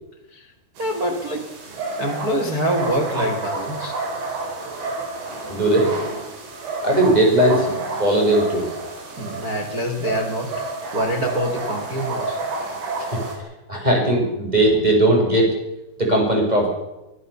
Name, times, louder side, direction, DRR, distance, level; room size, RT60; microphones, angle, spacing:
voice 1, 0.8-1.5 2.0-4.0 9.2-12.4, equal, 65° right, 3 dB, 0.9 m, -25 dB
sound 1, 0.8-13.4, right 3 dB, 80° right, 6.5 m, -30 dB
voice 2, 5.5-5.9 6.8-7.6 8.0-8.7 13.1-13.2 13.7-15.5 16.0-16.7, right 1 dB, 10° right, 0 dB, 6.5 m, -18 dB
24.0 x 15.5 x 7.0 m, 0.96 s
omnidirectional pair, 5.0 m